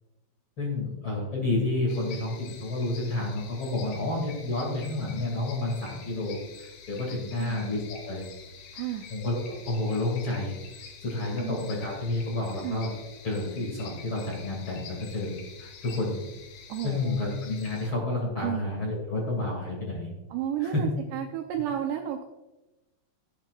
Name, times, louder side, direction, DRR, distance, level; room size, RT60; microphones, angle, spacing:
voice 1, 0.6-8.2 9.1-10.6 11.0-12.9 13.2-16.2 16.8-20.1 20.6-20.8, left 2 dB, 40° left, -4 dB, 1.8 m, -30 dB
sound 1, 1.9-17.9, left 5 dB, 80° left, 3.9 m, -47 dB
voice 2, 8.7-9.1 11.4-11.6 12.6-12.8 16.7-17.2 18.4-18.8 20.3-22.3, right 10 dB, 80° right, 3 dB, 2.4 m, -32 dB
16.5 x 8.7 x 2.4 m, 1.0 s
omnidirectional pair, 5.7 m